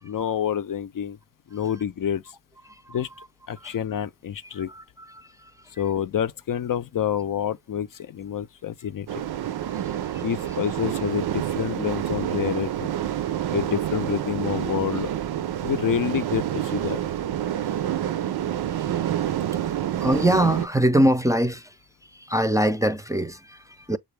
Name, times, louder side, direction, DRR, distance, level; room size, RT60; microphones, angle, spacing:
voice 1, 0.0-1.2 1.5-2.2 2.9-3.1 3.5-4.7 5.8-9.1 10.2-12.9 13.5-15.1 15.6-17.0, left 9 dB, 55° left, 0.5 m, -28 dB
voice 2, 2.6-3.3 3.6-3.8 4.5-5.5 9.6-10.2 17.6-17.8 18.7-18.9 20.0-21.8 22.0-24.0, right 1 dB, 10° right, 0.5 m, -24 dB
sound 1, 9.1-20.7, right 11 dB, 70° right, 0.6 m, -28 dB
6.8 x 2.4 x 3.3 m
cardioid pair, 45°, 39 cm